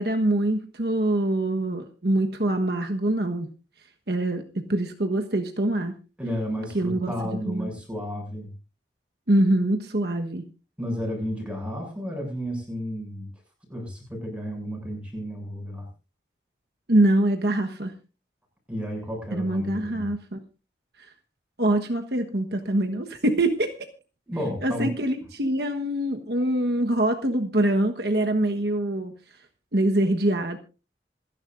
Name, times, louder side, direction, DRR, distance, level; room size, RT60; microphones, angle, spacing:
voice 1, 0.0-3.5 4.1-5.9 6.7-7.7 9.3-10.4 16.9-17.9 19.3-20.4 21.6-23.7 24.6-29.1 29.7-30.6, right 1 dB, 60° right, 4 dB, 1.3 m, -24 dB
voice 2, 6.2-8.5 10.8-13.3 13.7-15.9 18.7-20.1 24.3-25.3, equal, 5° right, 0 dB, 7.2 m, -32 dB
27.0 x 11.0 x 2.6 m, 0.33 s
head